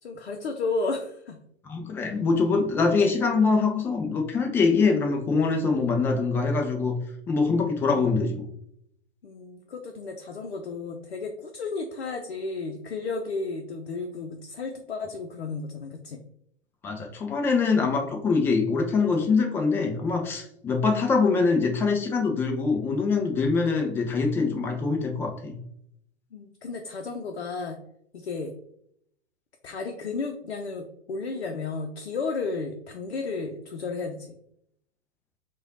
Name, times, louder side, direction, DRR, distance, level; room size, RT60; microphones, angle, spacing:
voice 1, 0.0-1.4 7.8-8.1 9.2-16.2 26.3-27.8 28.1-28.5 29.6-34.4, left 4 dB, 65° left, 3 dB, 0.7 m, -33 dB
voice 2, 1.6-7.0 7.3-8.5 16.8-25.6, left 4 dB, 5° left, 3 dB, 0.3 m, -24 dB
4.8 x 2.4 x 4.0 m, 0.71 s
figure-of-eight pair, 100°, 33 cm